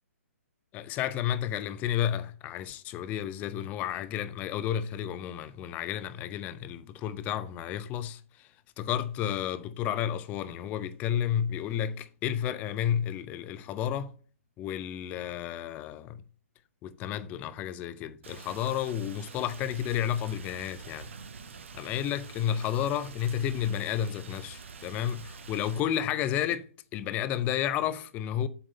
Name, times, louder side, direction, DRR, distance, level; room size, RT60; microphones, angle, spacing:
voice 1, 0.7-8.5 8.8-14.1 14.6-16.2 16.8-21.1 21.7-26.7 26.9-28.5, left 10 dB, 20° left, 0.5 m, -31 dB
Rain, 18.2-25.8, right 5 dB, 55° right, 0.9 m, -46 dB
8.0 x 3.7 x 5.3 m
figure-of-eight pair, 125°, 8 cm